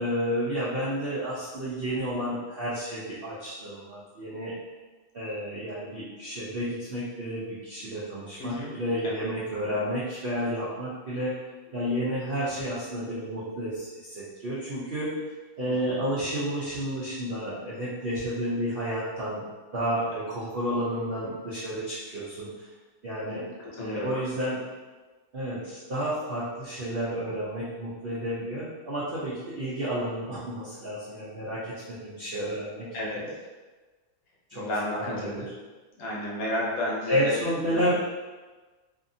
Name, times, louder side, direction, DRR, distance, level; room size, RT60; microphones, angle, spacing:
voice 1, 0.0-4.5 5.1-11.3 11.7-15.1 15.6-19.4 19.7-22.5 23.0-23.4 23.8-24.6 25.3-33.3 34.5-35.4 37.1-37.9, equal, 65° right, -9 dB, 0.5 m, -31 dB
voice 2, 8.4-8.7 9.0-9.1 12.5-12.6 15.6-15.9 23.2-23.4 23.7-24.2 32.9-33.2 34.5-35.4 36.0-37.4 37.7-37.9, left 1 dB, 70° left, -4 dB, 1.1 m, -32 dB
2.7 x 2.5 x 2.5 m, 1.3 s
omnidirectional pair, 1.7 m